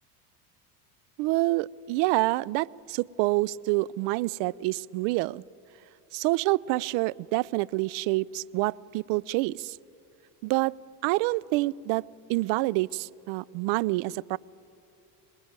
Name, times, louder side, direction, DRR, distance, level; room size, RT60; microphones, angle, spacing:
voice 1, 1.2-5.4 6.1-9.8 10.4-10.7 11.0-12.0 12.3-14.4, right 20 dB, 65° right, 23 dB, 0.6 m, -27 dB
25.0 x 20.0 x 8.9 m, 2.6 s
supercardioid pair, 100°, 48 cm